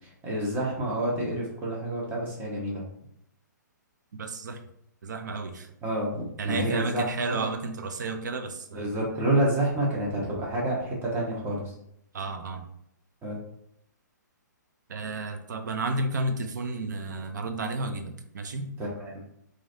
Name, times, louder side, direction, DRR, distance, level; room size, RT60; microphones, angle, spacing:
voice 1, 0.2-2.8 5.8-7.4 8.7-11.6 13.2-13.4 19.0-19.2, right 1 dB, 20° right, -4 dB, 1.0 m, -28 dB
voice 2, 4.2-4.6 5.0-5.7 6.4-9.0 12.1-12.7 14.9-18.8, right 2 dB, 70° right, 7 dB, 0.5 m, -32 dB
3.1 x 2.6 x 2.6 m, 0.73 s
hypercardioid pair, 130°, 10 cm